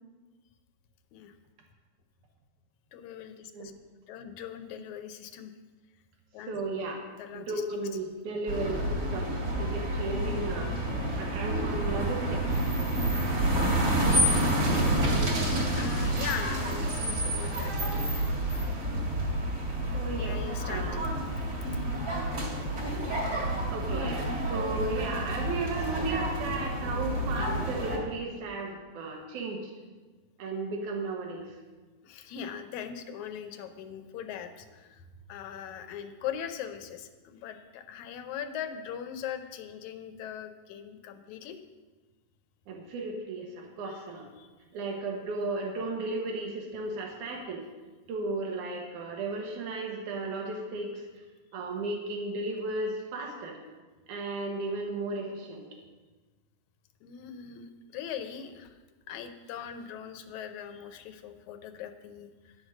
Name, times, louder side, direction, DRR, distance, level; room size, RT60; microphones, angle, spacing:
voice 1, 2.9-3.7 4.1-5.5 6.3-6.6 7.2-7.7 14.7-14.8 15.7-18.3 20.2-21.1 21.4-21.9 32.0-41.6 43.9-44.0 44.4-44.5 57.0-58.7 59.1-62.6, left 8 dB, 80° left, 8 dB, 2.0 m, -41 dB
voice 2, 6.5-7.0 7.3-10.7 11.2-12.6 19.9-21.0 23.7-29.7 30.4-31.4 42.7-44.3 44.7-47.6 48.1-51.0 51.5-53.6 54.1-55.7, right 2 dB, 80° right, 1 dB, 2.8 m, -35 dB
sound 1, 8.5-28.0, right 1 dB, 45° right, 3.0 m, -29 dB
11.0 x 6.5 x 6.3 m, 1.3 s
omnidirectional pair, 3.5 m